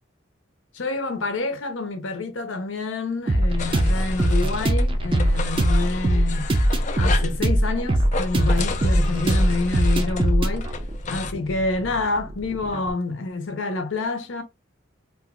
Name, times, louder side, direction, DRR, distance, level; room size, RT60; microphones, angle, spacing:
voice 1, 0.7-6.5 7.0-10.8 11.1-14.4, left 3 dB, 75° left, 0.7 m, -28 dB
sound 1, 3.3-12.9, right 1 dB, 25° right, 0.4 m, -22 dB
sound 2, 3.6-4.8 5.1-7.4 8.0-11.3, left 5 dB, 40° left, 0.3 m, -33 dB
2.6 x 2.3 x 3.5 m
head